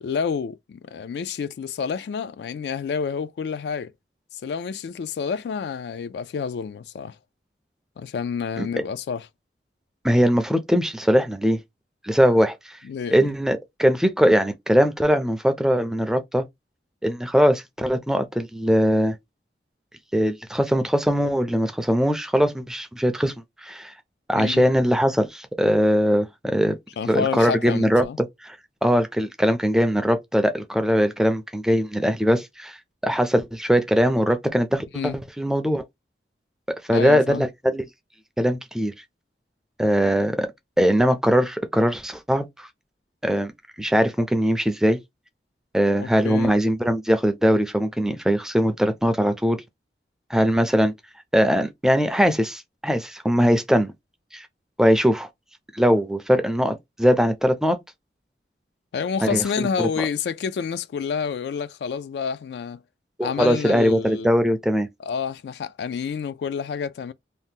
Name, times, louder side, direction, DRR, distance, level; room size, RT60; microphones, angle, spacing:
voice 1, 0.0-3.9 4.3-7.2 8.0-9.3 12.8-13.3 24.3-24.6 27.0-28.2 34.9-35.1 36.9-37.4 46.0-46.5 58.9-62.8 63.2-64.3 65.0-67.1, left 6 dB, 75° left, 0.3 m, -29 dB
voice 2, 10.0-11.6 12.0-12.6 13.1-16.4 17.0-19.2 20.1-23.3 23.6-23.9 24.3-26.8 27.1-28.6 28.8-32.8 33.0-35.8 36.9-37.8 38.4-38.9 39.8-40.5 40.8-42.7 43.2-43.5 43.8-45.0 45.7-49.6 50.3-50.9 51.3-53.9 54.3-54.5 54.8-55.3 55.7-57.8 59.2-60.1 63.2-64.9, equal, 5° right, 0.4 m, -21 dB
2.8 x 2.1 x 3.5 m
head